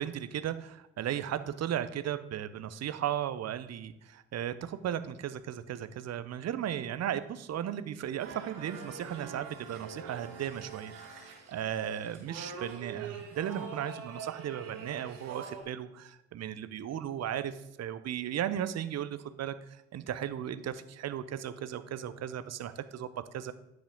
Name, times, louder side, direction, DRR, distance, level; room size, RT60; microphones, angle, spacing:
voice 1, 0.0-10.9 11.5-19.5 19.9-23.1 23.3-23.5, right 10 dB, 45° right, 13 dB, 0.7 m, -36 dB
sound 1, 8.2-15.6, right 6 dB, 75° right, 1.5 m, -44 dB
9.9 x 5.1 x 3.8 m, 0.89 s
hypercardioid pair, 50°, 37 cm